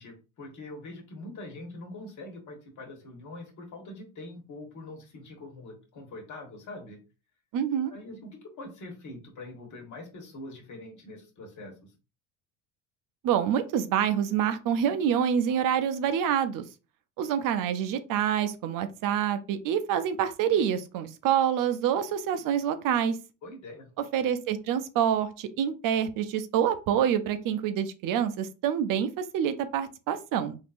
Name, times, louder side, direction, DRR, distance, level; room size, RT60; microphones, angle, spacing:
voice 1, 0.0-7.0 7.9-11.9 23.4-23.9, left 2 dB, 50° left, 1.5 m, -43 dB
voice 2, 7.5-7.9 13.2-16.6 17.2-23.2 24.1-30.6, right 9 dB, 60° right, 0.5 m, -27 dB
3.6 x 2.7 x 2.5 m
supercardioid pair, 80°, 38 cm